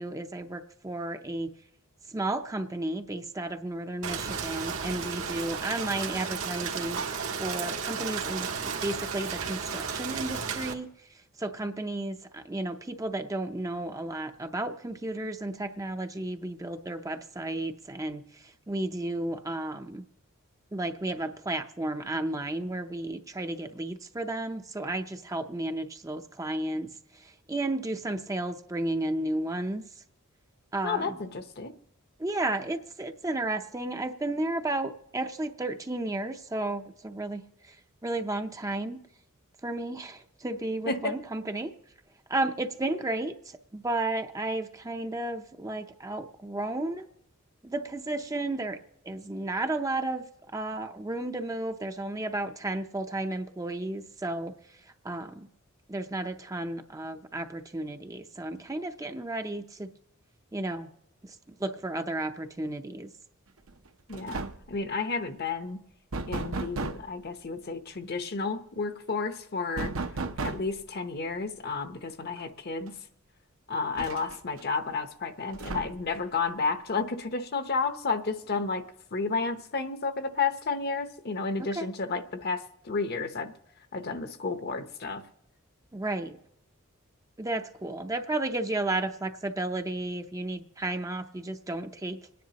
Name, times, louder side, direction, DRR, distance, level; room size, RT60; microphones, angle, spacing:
voice 1, 0.0-1.5 2.1-7.0 7.4-10.9 11.4-20.0 20.7-29.8 30.7-31.2 32.2-37.8 38.0-39.0 39.6-41.7 42.3-47.1 47.6-48.8 49.0-50.2 50.5-54.8 55.0-55.5 55.9-59.9 60.5-60.9 61.2-63.1 81.6-81.9 85.9-86.4 87.4-92.2, right 2 dB, 15° right, 6 dB, 0.5 m, -33 dB
Rain, 4.0-10.7, right 6 dB, 85° right, 1.5 m, -33 dB
voice 2, 30.8-31.7 40.9-41.2 64.1-65.8 66.3-69.9 70.4-72.9 73.7-78.8 79.1-83.5 83.9-85.2, left 4 dB, 50° left, 8 dB, 0.8 m, -31 dB
sound 1, 63.7-63.9 64.1-64.8 66.1-67.1 69.8-70.8 72.4-72.5 72.9-73.0 74.0-74.6 75.5-76.2, right 3 dB, 65° right, 0.8 m, -34 dB
27.0 x 10.0 x 2.9 m, 0.80 s
head